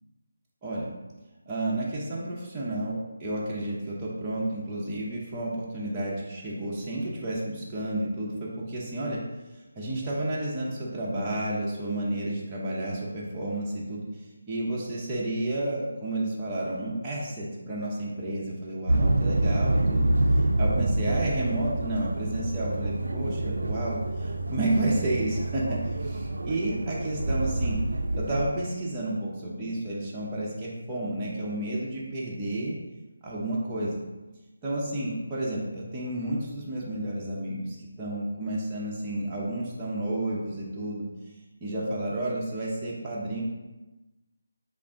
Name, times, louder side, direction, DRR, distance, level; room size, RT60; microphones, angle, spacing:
voice 1, 1.5-9.2 9.8-27.8 28.1-32.8 33.2-33.9 34.6-41.0 41.6-43.4, right 1 dB, 15° right, -7 dB, 0.6 m, -31 dB
sound 1, 18.9-28.5, right 1 dB, 80° right, 0.3 m, -27 dB
3.4 x 2.4 x 3.6 m, 1.1 s
figure-of-eight pair, 165°, 0 cm